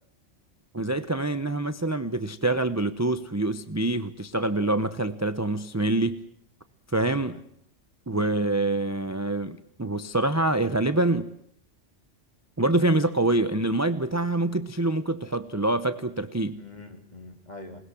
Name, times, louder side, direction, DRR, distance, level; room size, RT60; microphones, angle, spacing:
voice 1, 0.7-6.2 6.9-7.4 8.1-11.3 12.6-16.6, right 2 dB, 15° right, 0.8 m, -25 dB
voice 2, 7.0-7.4 8.1-8.3 16.5-17.8, left 2 dB, 35° left, 3.4 m, -44 dB
27.5 x 20.5 x 7.7 m
omnidirectional pair, 1.2 m